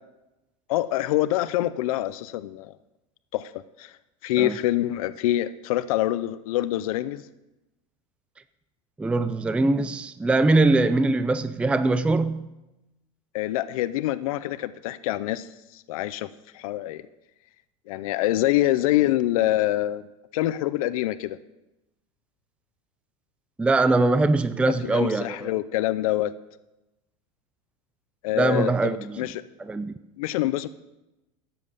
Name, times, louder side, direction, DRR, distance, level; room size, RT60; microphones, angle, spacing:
voice 1, 0.7-2.7 3.3-3.5 3.8-3.9 4.2-7.2 13.3-16.3 16.5-17.0 17.9-20.0 20.3-21.4 24.9-26.3 28.2-29.4 30.2-30.7, left 15 dB, 80° left, 14 dB, 0.6 m, -25 dB
voice 2, 9.0-12.5 23.6-25.5 28.4-29.2 29.6-29.9, right 2 dB, 5° right, 12 dB, 0.4 m, -22 dB
12.5 x 7.8 x 6.8 m, 0.97 s
supercardioid pair, 120°, 18 cm